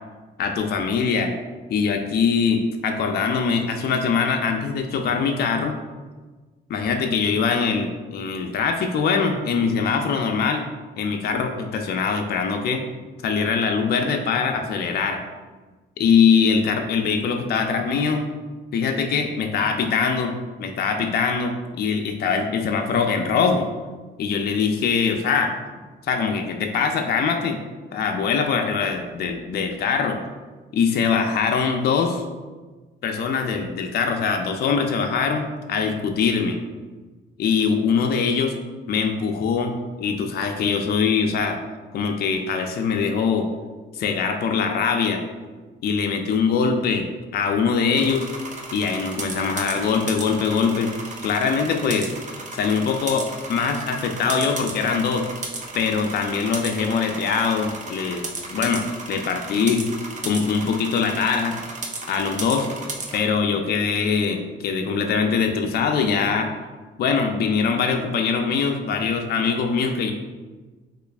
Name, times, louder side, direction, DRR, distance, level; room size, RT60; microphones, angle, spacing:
voice 1, 0.4-1.3 1.7-5.8 6.7-10.7 11.0-12.8 13.2-15.2 16.0-18.2 18.7-23.7 24.2-25.5 26.1-27.6 27.9-30.2 30.7-32.2 33.0-36.6 37.4-38.5 38.9-41.6 41.9-43.5 43.9-45.2 45.8-48.3 48.7-50.9 51.2-52.1 52.5-55.3 55.7-59.9 60.3-61.6 62.1-62.7 63.1-66.5 67.0-70.1, left 5 dB, 55° left, 4 dB, 0.4 m, -22 dB
sound 1, 47.9-63.2, right 3 dB, 40° right, 0.6 m, -34 dB
3.0 x 2.4 x 3.3 m, 1.3 s
cardioid pair, 90°, 20 cm